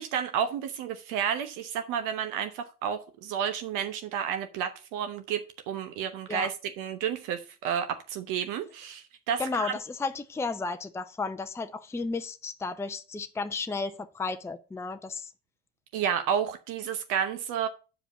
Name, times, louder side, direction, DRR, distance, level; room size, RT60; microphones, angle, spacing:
voice 1, 0.0-9.7 15.9-17.7, right 8 dB, 60° right, 0.9 m, -31 dB
voice 2, 9.4-15.3, left 4 dB, 5° left, 0.6 m, -33 dB
7.3 x 5.0 x 6.6 m
hypercardioid pair, 65°, 36 cm